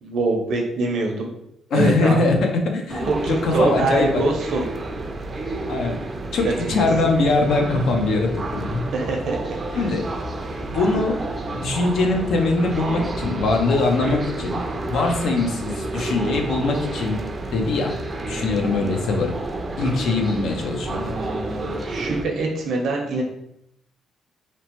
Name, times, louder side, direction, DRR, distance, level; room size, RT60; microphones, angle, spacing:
voice 1, 0.0-1.3 1.7-2.2 3.1-4.7 6.4-6.9 8.9-9.8 20.9-23.2, right 3 dB, 70° right, 1 dB, 0.6 m, -24 dB
voice 2, 1.7-4.2 5.7-6.0 6.3-8.8 9.7-10.1 10.6-11.2 11.5-14.6 14.9-18.0 18.3-19.3 19.8-21.0, left 3 dB, 75° left, 3 dB, 0.5 m, -22 dB
sound 1, 2.9-22.2, right 2 dB, 35° right, 0.4 m, -30 dB
2.8 x 2.1 x 2.9 m, 0.78 s
cardioid pair, 90°, 0 cm